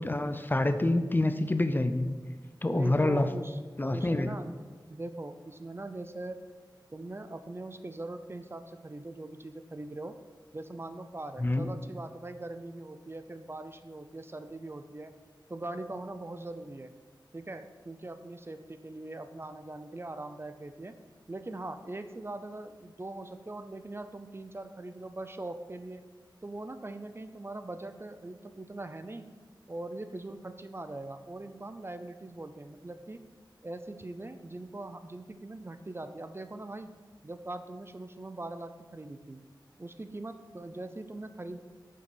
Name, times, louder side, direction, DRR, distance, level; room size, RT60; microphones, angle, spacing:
voice 1, 0.0-2.2 2.6-3.3 3.8-4.4 11.4-11.7, left 2 dB, 25° left, 9 dB, 0.5 m, -27 dB
voice 2, 2.7-3.6 3.9-4.5 4.9-6.4 6.9-10.2 10.5-15.1 15.5-16.9 17.3-20.9 21.3-26.1 26.4-29.3 29.7-33.2 33.6-36.9 37.2-39.4 39.8-41.6, right 2 dB, 30° right, 9 dB, 0.5 m, -41 dB
8.0 x 6.7 x 5.4 m, 1.5 s
wide cardioid pair, 90°, 8 cm